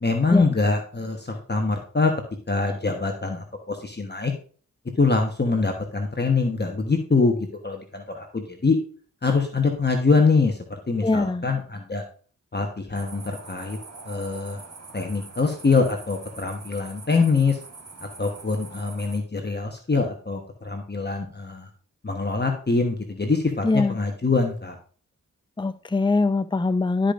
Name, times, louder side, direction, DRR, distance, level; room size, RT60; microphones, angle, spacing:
voice 1, 0.0-2.1 2.5-4.3 5.0-8.8 9.2-12.0 12.5-13.8 14.0-14.6 14.9-17.6 18.0-21.7 22.0-24.7, left 4 dB, 30° left, 3 dB, 1.2 m, -24 dB
voice 2, 11.0-11.4 23.6-24.0 25.6-27.1, left 3 dB, 15° left, 12 dB, 0.5 m, -22 dB
sound 1, 12.9-19.2, right 3 dB, 50° right, 1.4 m, -44 dB
12.5 x 5.1 x 2.6 m, 0.42 s
cardioid pair, 45°, 32 cm